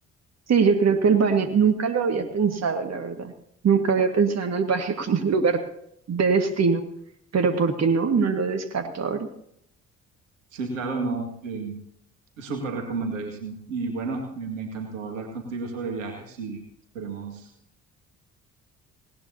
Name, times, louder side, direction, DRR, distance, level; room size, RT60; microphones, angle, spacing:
voice 1, 0.5-3.3 3.6-5.6 6.1-6.8 7.3-9.3, right 5 dB, 40° right, 6 dB, 1.9 m, -22 dB
voice 2, 10.5-11.8 12.4-16.6 16.9-17.5, right 4 dB, 80° right, 3 dB, 2.1 m, -32 dB
19.0 x 18.0 x 2.8 m, 0.71 s
figure-of-eight pair, 45°, 39 cm